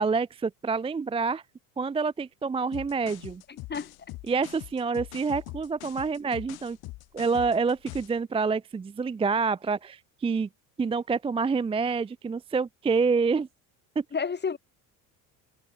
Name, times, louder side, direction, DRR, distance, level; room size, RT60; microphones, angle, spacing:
voice 1, 0.0-1.4 1.8-3.4 4.3-6.8 7.1-10.5 10.8-13.5 14.0-14.1, right 4 dB, 15° right, 0.5 m, -27 dB
sound 1, 2.7-8.2, left 20 dB, 70° left, 6.6 m, -42 dB
voice 2, 3.5-4.1 14.1-14.6, left 5 dB, 25° left, 6.1 m, -31 dB
supercardioid pair, 105°, 38 cm